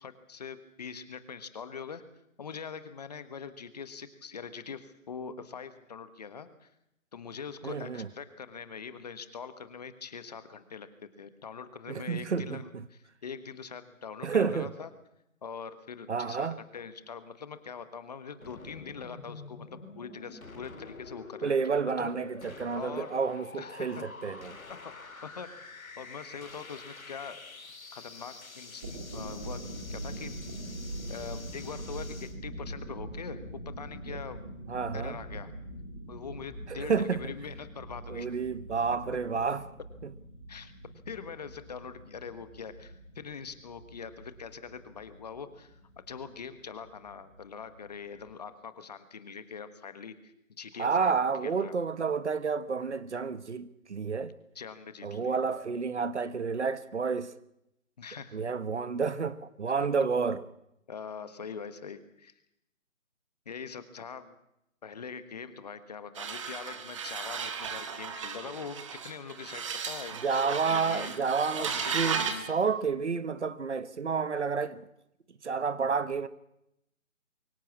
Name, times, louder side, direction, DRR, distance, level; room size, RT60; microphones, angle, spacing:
voice 1, 0.0-2.0 2.4-6.7 7.1-14.9 15.4-21.5 22.0-22.1 22.7-23.1 23.6-24.0 24.8-24.9 25.2-25.5 26.0-27.5 27.9-30.4 31.1-34.4 34.9-35.5 36.1-38.3 40.5-40.7 41.1-51.7 54.5-55.4 58.0-58.4 60.0-60.1 60.9-62.3 63.4-64.3 64.8-71.1 71.6-72.4, left 6 dB, 30° left, 1.4 m, -43 dB
voice 2, 7.6-8.1 11.9-12.8 14.2-14.7 16.1-16.6 21.4-24.6 34.1-34.2 34.7-35.2 36.7-37.3 38.1-39.6 40.0-40.1 50.8-54.3 55.0-57.3 58.3-60.4 70.2-74.8 75.4-76.3, right 5 dB, 55° right, 1.4 m, -30 dB
sound 1, 18.4-32.4, left 3 dB, 80° left, 3.3 m, -47 dB
sound 2, 28.6-48.3, right 1 dB, 5° right, 0.8 m, -43 dB
sound 3, 66.1-72.5, right 6 dB, 20° right, 1.6 m, -35 dB
24.0 x 16.5 x 8.6 m
figure-of-eight pair, 160°, 41 cm